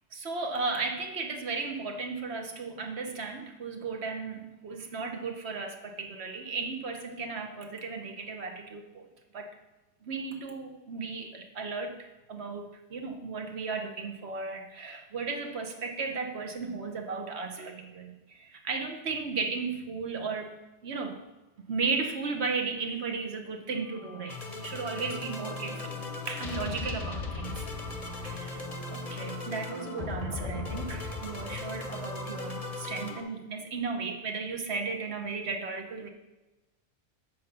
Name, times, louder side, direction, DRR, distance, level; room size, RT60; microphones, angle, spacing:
voice 1, 0.1-9.1 9.3-9.5 10.0-20.6 20.8-21.2 21.7-25.9 26.3-27.6 28.0-28.6 28.9-36.1, right 4 dB, 60° right, 4 dB, 1.1 m, -35 dB
sound 1, 23.9-33.2, left 3 dB, 35° left, 0.8 m, -37 dB
7.5 x 5.1 x 5.6 m, 1.1 s
omnidirectional pair, 1.3 m